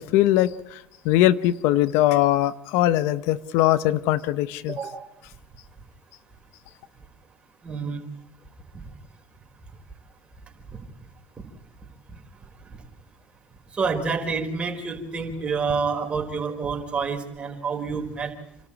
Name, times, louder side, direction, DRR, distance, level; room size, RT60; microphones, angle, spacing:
voice 1, 0.0-4.8, left 14 dB, 75° left, 0.9 m, -21 dB
voice 2, 4.7-5.0 7.6-8.0 8.7-8.8 10.7-10.8 11.4-11.5 12.1-12.2 12.7-12.8 13.7-18.3, right 5 dB, 25° right, 4.5 m, -28 dB
28.5 x 13.0 x 8.7 m
supercardioid pair, 105°, 4 cm